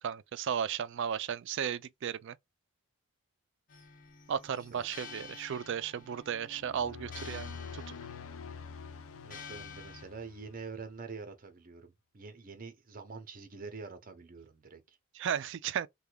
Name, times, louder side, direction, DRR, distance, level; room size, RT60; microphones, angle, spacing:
voice 1, 0.0-2.4 4.3-7.9 15.1-15.9, right 8 dB, 55° right, 0.3 m, -35 dB
sound 1, 3.7-10.0, left 4 dB, 40° left, 0.7 m, -50 dB
sound 2, 6.5-10.9, left 6 dB, 70° left, 0.5 m, -46 dB
voice 2, 9.2-15.0, right 4 dB, 40° right, 0.8 m, -46 dB
3.4 x 2.3 x 3.2 m
head